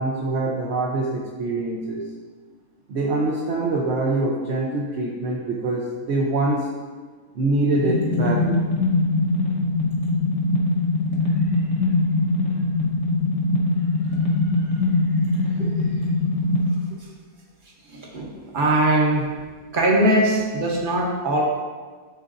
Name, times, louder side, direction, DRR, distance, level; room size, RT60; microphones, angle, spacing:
voice 1, 0.0-2.0 2.9-6.7 7.3-8.6 14.1-14.2 14.6-14.7, right 2 dB, 55° right, -2 dB, 0.9 m, -24 dB
sound 1, 7.8-16.7, left 2 dB, 80° left, 1.7 m, -22 dB
voice 2, 17.9-19.3 19.7-21.4, right 1 dB, 40° right, -2 dB, 1.1 m, -21 dB
11.0 x 3.9 x 2.6 m, 1.5 s
omnidirectional pair, 1.6 m